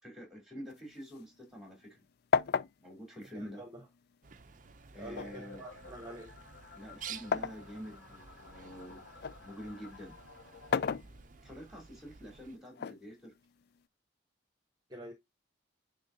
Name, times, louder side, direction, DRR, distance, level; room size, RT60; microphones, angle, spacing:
voice 1, 0.0-2.0 2.8-3.6 4.9-5.6 6.7-9.0 9.4-10.2 11.4-13.3, equal, ahead, 3.3 m, -47 dB
sound 1, 0.7-2.0 2.3-4.3 5.1-7.7 8.2-9.4 10.5-11.6 12.7-13.8, left 6 dB, 50° left, 0.3 m, -35 dB
voice 2, 3.3-3.7 5.0-6.3 14.9-15.1, right 1 dB, 20° right, 1.2 m, -46 dB
Bird, 4.2-12.6, right 7 dB, 40° right, 0.5 m, -52 dB
sound 2, 5.1-11.3, left 3 dB, 70° left, 2.2 m, -54 dB
10.0 x 3.6 x 2.7 m
head